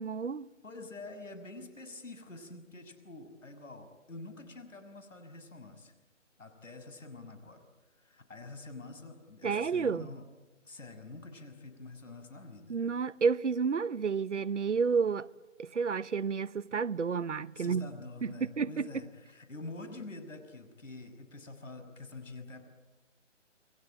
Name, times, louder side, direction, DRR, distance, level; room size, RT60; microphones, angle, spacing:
voice 1, 0.0-0.5 9.4-10.1 12.7-15.3 15.6-17.9 18.2-18.8, right 5 dB, 70° right, 0.9 m, -30 dB
voice 2, 0.6-5.9 6.4-7.6 7.9-10.2 10.6-12.8 17.5-22.6, left 2 dB, 90° left, 6.4 m, -47 dB
29.0 x 22.5 x 8.9 m
hypercardioid pair, 175°, 37 cm